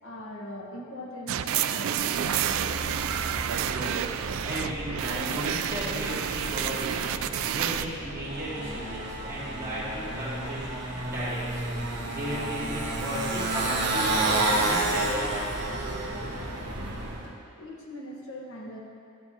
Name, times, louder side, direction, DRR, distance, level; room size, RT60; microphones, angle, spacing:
voice 1, 0.0-3.0 17.6-18.8, equal, 75° left, -2 dB, 1.3 m, -41 dB
sound 1, 1.3-7.9, right 9 dB, 75° right, 0.3 m, -29 dB
Motorcycle, 1.9-17.3, right 2 dB, 50° right, 1.3 m, -31 dB
voice 2, 3.6-15.3, equal, 15° right, -10 dB, 2.3 m, -35 dB
12.0 x 8.4 x 2.8 m, 2.5 s
head